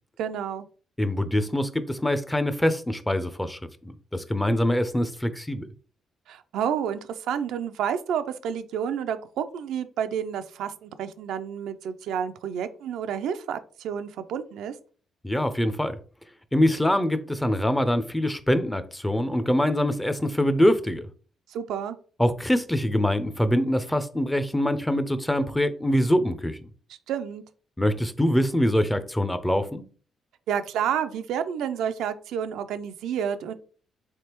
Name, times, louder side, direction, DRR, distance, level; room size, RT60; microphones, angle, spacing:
voice 1, 0.2-0.7 6.3-14.7 21.5-22.0 27.1-27.4 30.5-33.5, right 8 dB, 80° right, 0.3 m, -30 dB
voice 2, 1.0-5.7 15.2-16.0 16.5-21.1 22.2-26.6 27.8-29.8, left 1 dB, 10° left, 0.4 m, -24 dB
3.8 x 3.3 x 2.9 m
cardioid pair, 90°, 0 cm